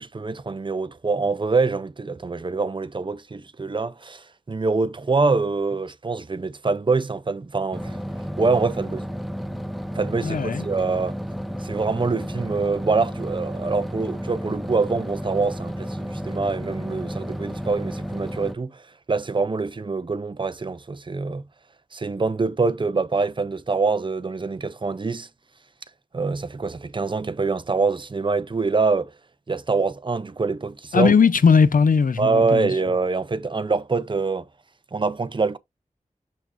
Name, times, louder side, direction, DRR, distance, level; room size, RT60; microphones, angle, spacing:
voice 1, 0.0-8.0 8.4-9.1 9.9-11.2 11.6-18.8 19.1-21.4 21.9-25.3 26.1-29.1 29.5-31.1 32.2-34.5 34.9-35.6, right 4 dB, 35° right, 0.6 m, -25 dB
sound 1, 7.7-18.5, equal, ahead, 0.7 m, -32 dB
voice 2, 10.2-10.7 30.9-32.7, left 5 dB, 85° left, 0.7 m, -18 dB
6.3 x 6.1 x 2.6 m
wide cardioid pair, 90°, 14 cm